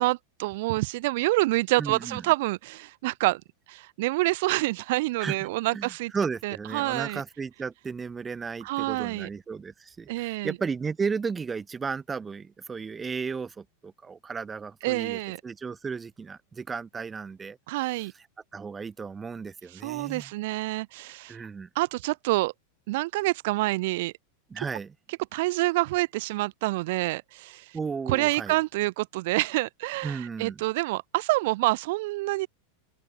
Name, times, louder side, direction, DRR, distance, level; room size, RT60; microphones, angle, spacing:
voice 1, 0.0-3.4 3.7-6.1 6.4-7.2 8.6-9.3 10.1-10.5 14.8-15.4 17.7-18.1 19.8-21.4 21.7-22.5 22.9-24.1 25.3-27.7 28.1-32.5, right 20 dB, 60° right, 3.3 m, -27 dB
voice 2, 1.8-2.2 5.2-17.6 18.0-18.1 18.5-20.3 21.3-21.7 24.5-24.9 27.7-28.5 30.0-30.6, right 5 dB, 15° right, 4.7 m, -34 dB
open air
supercardioid pair, 155°, 0 cm